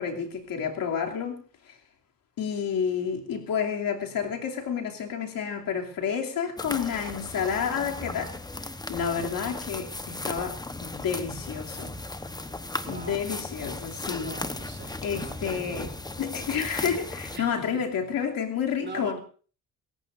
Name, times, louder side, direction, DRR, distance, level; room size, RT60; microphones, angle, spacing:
voice 1, 0.0-1.4 1.7-1.8 2.4-8.3 8.9-11.9 12.9-14.4 15.0-15.9 16.2-19.2, left 7 dB, 80° left, 3.0 m, -30 dB
sound 1, 6.6-17.4, left 2 dB, 10° left, 1.1 m, -36 dB
voice 2, 12.8-13.2 14.2-16.0 17.3-17.8 18.8-19.2, right 3 dB, 30° right, 3.6 m, -41 dB
27.5 x 14.5 x 2.7 m
cardioid pair, 105°, 34 cm